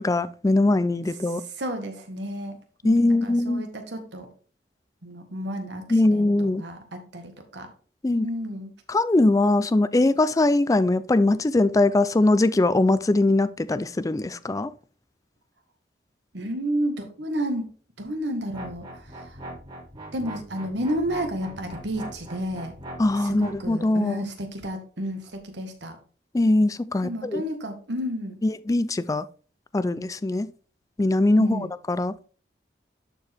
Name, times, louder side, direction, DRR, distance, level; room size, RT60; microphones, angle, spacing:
voice 1, 0.0-1.4 2.8-3.6 5.9-6.6 8.0-8.3 8.9-14.7 23.0-24.2 26.3-27.4 28.4-29.3 29.7-30.5 31.0-32.1, left 2 dB, 20° left, 0.4 m, -21 dB
voice 2, 1.6-2.6 2.8-4.3 5.0-5.8 6.1-7.7 8.2-8.7 16.3-19.4 20.1-22.7 23.2-26.0 27.0-28.4 31.4-31.7, equal, 85° right, 1.6 m, -31 dB
sound 1, 18.5-23.6, right 1 dB, 30° right, 3.6 m, -41 dB
11.5 x 4.6 x 3.5 m
head